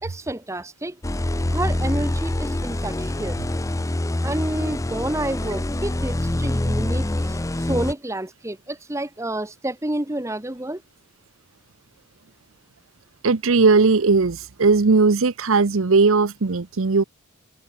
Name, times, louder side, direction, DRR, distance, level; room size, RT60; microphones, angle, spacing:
voice 1, 0.0-1.0 1.5-3.4 4.2-10.8, right 1 dB, 15° right, 1.2 m, -29 dB
sound 1, 1.0-7.9, left 1 dB, 15° left, 0.5 m, -25 dB
voice 2, 13.2-17.0, right 4 dB, 65° right, 0.7 m, -18 dB
head